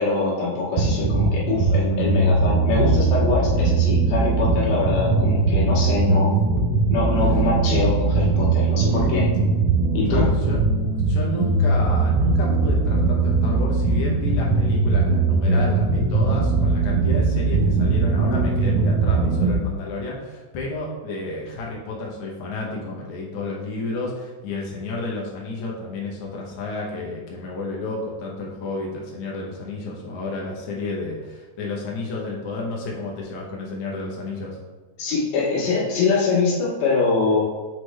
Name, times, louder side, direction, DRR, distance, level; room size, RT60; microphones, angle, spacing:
voice 1, 0.0-6.4 6.9-9.3 9.9-10.3 35.0-37.4, left 4 dB, 90° left, -5 dB, 3.2 m, -23 dB
sound 1, 0.8-19.5, right 3 dB, 70° right, 1.8 m, -20 dB
voice 2, 10.1-10.6 11.1-34.6, left 3 dB, 70° left, -3 dB, 2.3 m, -31 dB
6.3 x 4.8 x 3.2 m, 1.4 s
omnidirectional pair, 3.6 m